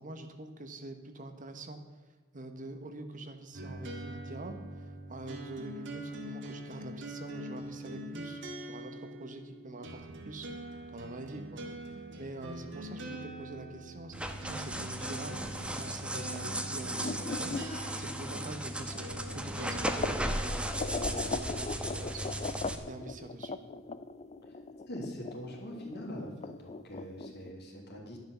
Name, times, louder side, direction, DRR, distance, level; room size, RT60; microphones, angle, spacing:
voice 1, 0.0-1.8 2.3-10.5 10.9-11.7 12.2-23.6, right 2 dB, 40° right, 7 dB, 1.2 m, -45 dB
sound 1, 3.5-19.9, right 1 dB, 60° right, 2.0 m, -44 dB
sound 2, 14.1-22.8, right 1 dB, 5° right, 1.0 m, -36 dB
sound 3, 16.9-20.2 20.7-27.5, left 4 dB, 30° left, 0.5 m, -39 dB
voice 2, 24.9-28.2, equal, 50° left, 0 dB, 3.2 m, -43 dB
11.5 x 10.5 x 6.9 m, 1.4 s
head